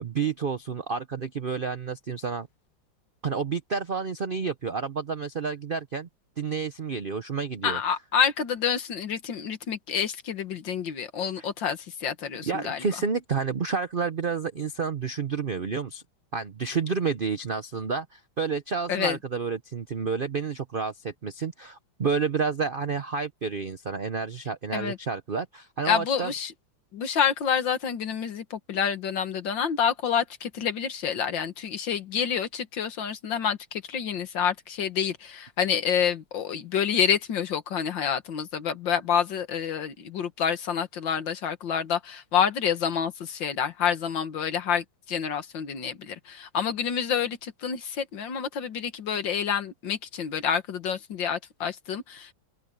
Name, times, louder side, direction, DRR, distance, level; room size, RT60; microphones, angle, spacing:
voice 1, 0.0-2.5 3.2-6.1 6.4-7.8 11.4-11.5 12.4-16.0 16.3-26.3, right 5 dB, 55° right, 0.5 m, -30 dB
voice 2, 7.6-12.9 18.9-19.2 24.7-25.0 25.8-26.5 26.9-52.3, left 7 dB, 70° left, 2.2 m, -28 dB
open air
omnidirectional pair, 2.1 m